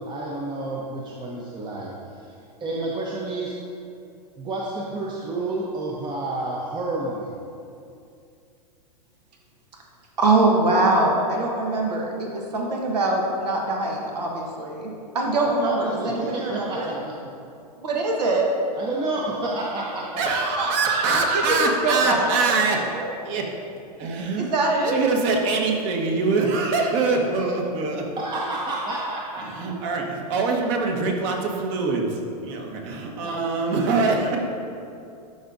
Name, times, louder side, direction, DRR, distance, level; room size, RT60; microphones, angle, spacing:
voice 1, 0.0-2.0 2.2-2.3 2.6-3.5 4.4-7.4 15.6-17.2 18.8-20.2 22.2-22.3 28.2-29.5 33.1-33.4, right 2 dB, 20° right, -3 dB, 0.7 m, -30 dB
voice 2, 10.2-16.9 17.8-18.5 20.6-20.7 21.3-21.6 21.8-22.2 22.9-23.1 24.4-25.0, right 2 dB, 80° right, 0 dB, 1.3 m, -23 dB
voice 3, 20.2-22.8 23.2-23.5 24.0-24.5 24.8-28.1 29.4-34.4, right 3 dB, 45° right, 1 dB, 1.3 m, -24 dB
11.5 x 5.1 x 2.6 m, 2.5 s
hypercardioid pair, 115°, 21 cm